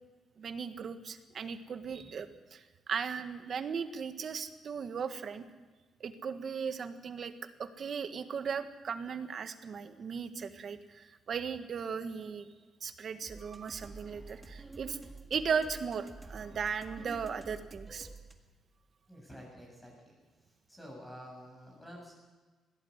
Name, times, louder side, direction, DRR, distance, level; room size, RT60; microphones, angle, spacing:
voice 1, 0.4-5.4 6.0-7.3 7.6-12.5 12.8-15.0 15.3-18.1, right 6 dB, 45° right, 9 dB, 1.5 m, -37 dB
sound 1, 13.3-18.3, right 3 dB, 15° right, 1.8 m, -49 dB
voice 2, 19.1-20.2 20.7-22.1, equal, 10° left, -1 dB, 7.5 m, -49 dB
21.0 x 17.0 x 8.1 m, 1.3 s
cardioid pair, 150°, 0 cm